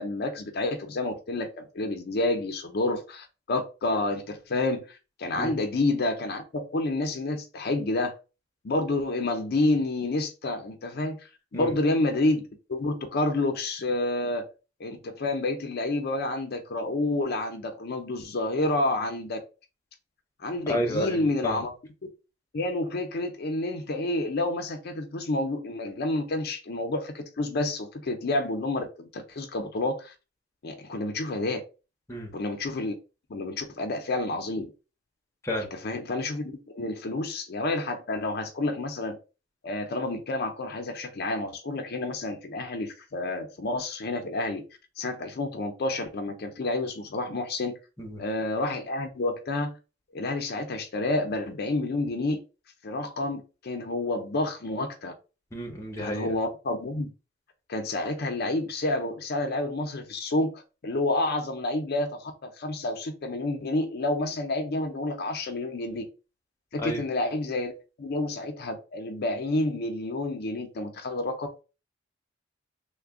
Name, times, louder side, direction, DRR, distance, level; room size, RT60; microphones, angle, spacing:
voice 1, 0.0-8.1 8.6-11.3 11.5-14.5 14.8-19.4 20.4-21.7 22.5-30.1 30.6-31.6 32.3-32.9 33.3-34.7 35.7-39.2 39.6-44.6 45.0-47.8 48.2-49.8 50.1-52.4 52.8-55.1 56.0-57.1 57.7-66.0 66.7-67.7 68.0-71.5, left 2 dB, 55° left, 0.5 m, -29 dB
voice 2, 20.7-21.6 32.1-32.3 35.4-35.7 48.0-48.2 55.5-56.3 66.8-67.0, equal, 15° left, 0.8 m, -31 dB
3.3 x 2.1 x 3.5 m
head